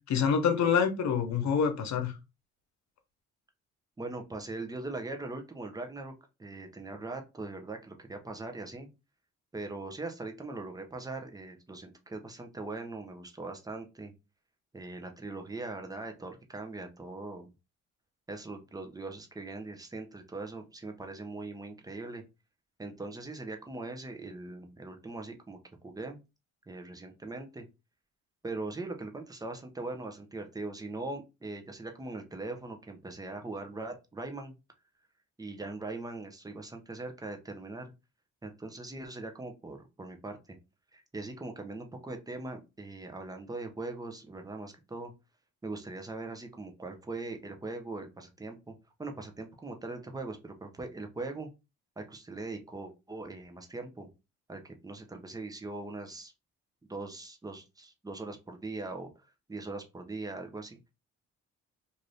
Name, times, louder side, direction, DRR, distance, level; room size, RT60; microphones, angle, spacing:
voice 1, 0.1-2.1, left 6 dB, 65° left, 0.9 m, -26 dB
voice 2, 4.0-6.1 6.4-8.9 9.5-14.1 14.7-17.5 18.3-22.2 22.8-25.6 25.8-26.2 26.7-27.7 28.4-34.5 35.4-37.9 38.4-40.6 40.9-45.1 45.6-48.7 49.0-51.5 52.0-54.1 54.5-56.3 56.8-60.8, right 2 dB, 10° right, 0.7 m, -41 dB
2.7 x 2.5 x 3.3 m
cardioid pair, 90°, 30 cm